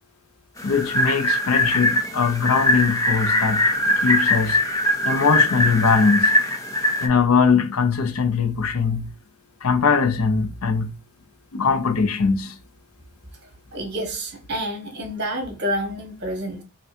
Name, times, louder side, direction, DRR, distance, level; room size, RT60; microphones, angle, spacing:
voice 1, 0.6-3.7 4.0-4.6 5.0-6.4 7.0-9.1 9.6-10.9 11.5-12.6, left 5 dB, 85° left, 0.6 m, -21 dB
sound 1, 0.6-7.1, left 1 dB, 15° left, 0.8 m, -21 dB
voice 2, 13.7-16.6, equal, 50° right, 1.4 m, -28 dB
5.7 x 2.3 x 2.6 m
head